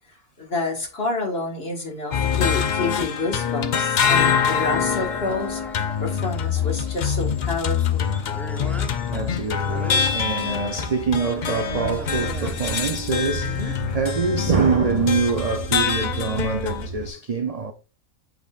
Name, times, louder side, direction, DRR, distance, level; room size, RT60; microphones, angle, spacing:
voice 1, 0.4-8.1 13.3-13.7, left 3 dB, 45° left, 1.9 m, -29 dB
sound 1, 2.1-16.9, left 7 dB, 70° left, 0.4 m, -25 dB
sound 2, 4.0-13.7, equal, ahead, 0.7 m, -40 dB
voice 2, 9.1-17.7, right 5 dB, 60° right, 0.3 m, -25 dB
sound 3, 11.7-17.1, right 3 dB, 35° right, 1.2 m, -34 dB
7.9 x 5.1 x 2.4 m
omnidirectional pair, 1.5 m